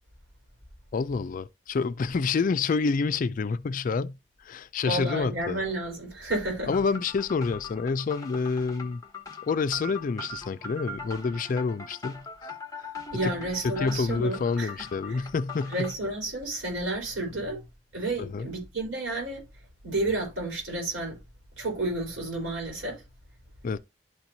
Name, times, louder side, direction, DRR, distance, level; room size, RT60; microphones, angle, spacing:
voice 1, 0.9-5.6 6.7-9.0 9.4-12.5 13.2-13.3 13.6-15.9 18.2-18.5 23.6-23.8, left 4 dB, 40° left, 0.3 m, -28 dB
voice 2, 4.8-6.7 13.1-15.2 15.7-17.6 17.9-19.4 19.8-21.2 21.6-23.0, right 2 dB, 70° right, 3.9 m, -31 dB
sound 1, 6.7-15.9, left 3 dB, 20° left, 1.0 m, -41 dB
11.5 x 4.5 x 2.7 m
head